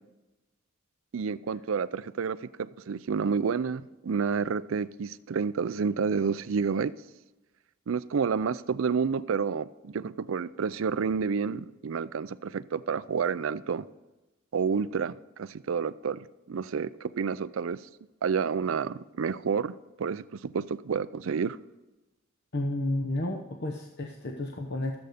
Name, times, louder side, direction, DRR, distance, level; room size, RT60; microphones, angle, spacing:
voice 1, 1.1-6.9 7.9-13.9 14.5-17.8 18.2-21.6, right 6 dB, 80° right, 0.4 m, -29 dB
voice 2, 22.5-25.0, left 1 dB, 55° left, 0.9 m, -31 dB
13.5 x 7.9 x 5.1 m
head